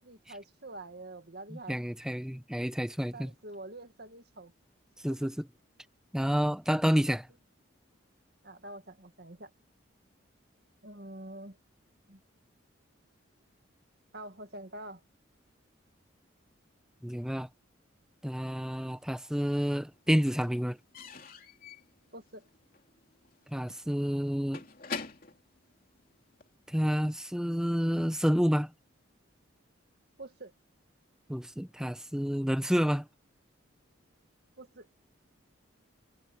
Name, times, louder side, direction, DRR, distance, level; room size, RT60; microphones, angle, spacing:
voice 1, 0.0-1.8 3.1-4.5 5.1-5.3 8.4-9.5 10.8-11.6 12.1-12.2 14.1-15.0 22.1-22.5 30.2-30.5 34.6-34.9, right 2 dB, 50° right, 2.0 m, -46 dB
voice 2, 1.5-3.3 5.0-5.3 6.1-7.3 17.0-17.5 18.2-20.8 23.5-24.6 26.7-28.7 31.3-33.1, equal, 5° right, 0.8 m, -29 dB
Slam / Squeak / Wood, 18.7-19.5 19.8-26.6, left 4 dB, 45° left, 3.2 m, -46 dB
head